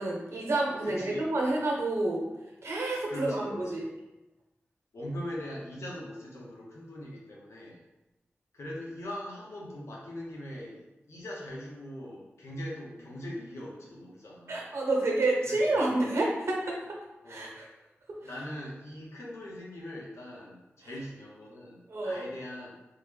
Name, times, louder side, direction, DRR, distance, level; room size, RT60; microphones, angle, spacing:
voice 1, 0.0-2.2 2.6-3.8 14.5-16.8 17.3-17.7 21.9-22.3, right 2 dB, 70° right, -2 dB, 0.9 m, -29 dB
voice 2, 0.8-1.3 3.1-3.9 4.9-7.8 8.5-14.6 15.5-15.9 17.2-17.5 18.2-22.7, left 1 dB, 85° left, -4 dB, 1.0 m, -41 dB
3.7 x 2.2 x 3.4 m, 1.0 s
cardioid pair, 50°, 5 cm